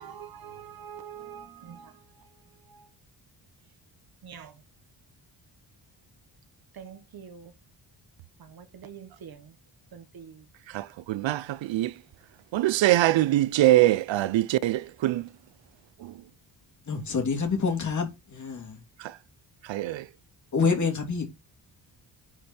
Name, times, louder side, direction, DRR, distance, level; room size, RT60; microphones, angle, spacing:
voice 1, 0.0-1.9 4.2-4.5 6.8-7.5 8.4-9.5 9.9-10.4, right 8 dB, 55° right, 1.4 m, -44 dB
voice 2, 10.7-11.9 12.5-15.2 19.7-20.0, right 15 dB, 90° right, 0.6 m, -23 dB
voice 3, 16.9-18.8 20.5-21.2, left 5 dB, 40° left, 3.0 m, -27 dB
10.0 x 5.2 x 4.3 m
wide cardioid pair, 170°, 44 cm